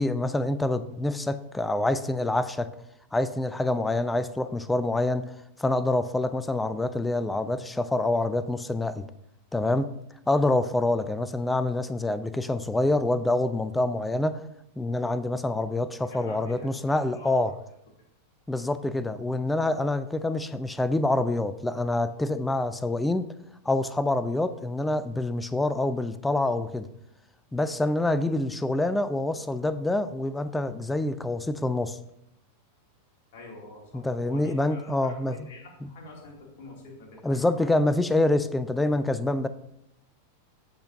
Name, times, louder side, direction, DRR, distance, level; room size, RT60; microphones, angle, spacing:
voice 1, 0.0-2.7 3.1-5.3 5.6-9.1 9.5-9.9 10.3-14.4 14.8-17.5 18.5-23.3 23.7-26.9 27.5-32.0 33.9-35.4 35.8-35.9 37.2-39.5, left 2 dB, 10° left, 13 dB, 0.4 m, -26 dB
voice 2, 16.0-17.5 33.3-37.7, left 3 dB, 50° left, -1 dB, 2.2 m, -47 dB
13.0 x 4.4 x 2.6 m, 0.81 s
figure-of-eight pair, 90°, 0 cm